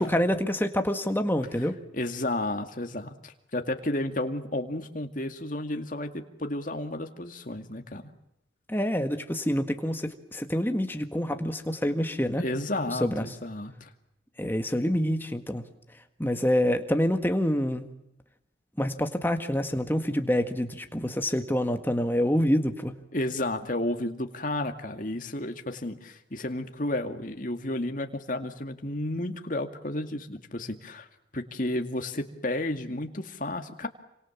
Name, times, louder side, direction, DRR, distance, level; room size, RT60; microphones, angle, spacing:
voice 1, 0.0-1.8 8.7-12.4 12.9-13.4 14.4-15.6 16.2-17.9 18.8-22.9, equal, 10° left, 6 dB, 1.7 m, -27 dB
voice 2, 1.9-8.1 12.4-13.9 23.1-31.1 31.3-33.9, left 1 dB, 45° left, 5 dB, 2.2 m, -32 dB
28.0 x 25.5 x 7.3 m, 0.83 s
head